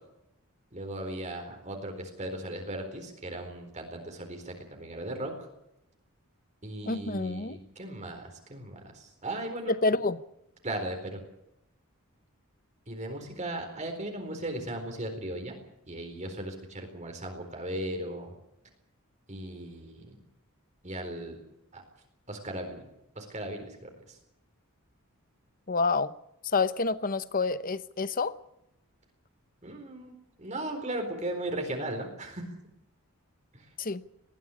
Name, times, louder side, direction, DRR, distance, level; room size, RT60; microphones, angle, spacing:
voice 1, 0.7-5.3 6.6-9.7 10.6-11.2 12.9-15.5 15.9-18.3 19.3-20.1 20.8-21.4 21.7-21.8 22.3-22.8 23.2-24.2 29.6-30.1 30.4-32.5 33.5-33.6, right 1 dB, 35° right, 4.2 m, -37 dB
voice 2, 6.9-7.6 9.7-10.2 25.7-26.1 26.5-28.3 33.8-34.0, left 3 dB, 40° left, 0.9 m, -28 dB
20.0 x 14.5 x 10.0 m
head